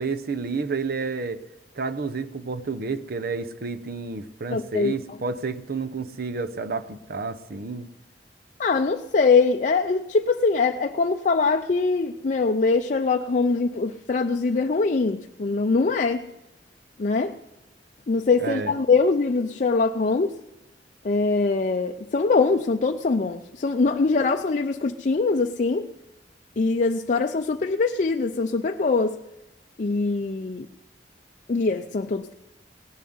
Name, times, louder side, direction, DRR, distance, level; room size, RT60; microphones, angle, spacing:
voice 1, 0.0-1.4 1.8-7.9 18.4-18.7, right 4 dB, 60° right, 12 dB, 0.7 m, -30 dB
voice 2, 4.5-5.2 8.6-16.2 17.0-17.3 18.1-20.4 21.0-25.9 26.6-29.2 29.8-30.7 31.5-32.3, left 4 dB, 45° left, 4 dB, 0.5 m, -23 dB
18.0 x 7.2 x 9.4 m, 0.96 s
head